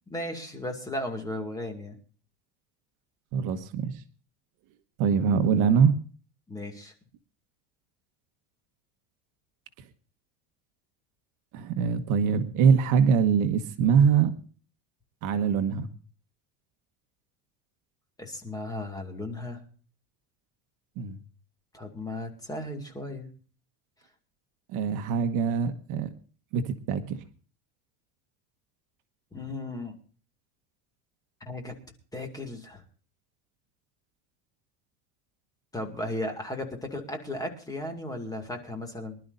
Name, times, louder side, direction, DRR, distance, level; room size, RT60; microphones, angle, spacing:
voice 1, 0.1-2.0 5.2-5.6 6.5-6.9 18.2-19.6 21.7-23.3 29.3-30.0 31.5-31.7 32.1-32.8 35.7-39.2, left 1 dB, 10° left, 4 dB, 2.2 m, -35 dB
voice 2, 3.3-4.0 5.0-5.9 11.5-14.3 15.2-15.9 21.0-21.2 24.7-26.1 26.5-27.2, right 6 dB, 55° right, 8 dB, 1.3 m, -23 dB
24.5 x 12.0 x 2.6 m, 0.39 s
cardioid pair, 160°, 38 cm